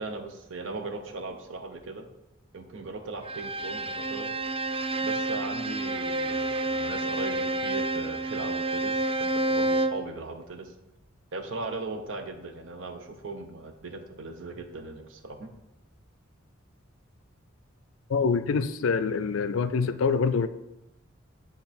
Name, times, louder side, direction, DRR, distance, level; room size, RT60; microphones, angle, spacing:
voice 1, 0.0-2.1 2.5-4.3 5.0-10.7 11.3-15.5, right 3 dB, 70° right, 6 dB, 0.8 m, -38 dB
Bowed string instrument, 3.2-10.1, right 2 dB, 30° right, 0.3 m, -29 dB
voice 2, 18.1-20.5, left 5 dB, 85° left, 12 dB, 0.4 m, -25 dB
7.9 x 3.6 x 4.3 m, 0.93 s
head